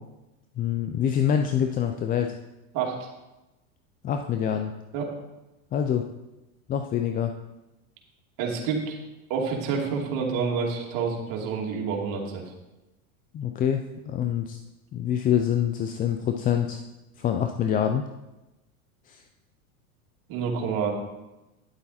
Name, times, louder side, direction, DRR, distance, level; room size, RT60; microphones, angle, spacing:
voice 1, 0.6-2.3 4.0-4.7 5.7-6.0 6.7-7.3 13.3-14.6 14.9-16.8 17.2-18.1 19.1-19.2, left 9 dB, 20° left, 6 dB, 0.4 m, -25 dB
voice 2, 2.7-3.1 4.9-5.1 8.4-9.0 9.3-12.4 20.3-20.9, right 5 dB, 50° right, 0 dB, 2.7 m, -28 dB
10.5 x 8.2 x 4.2 m, 1.0 s
supercardioid pair, 120°, 43 cm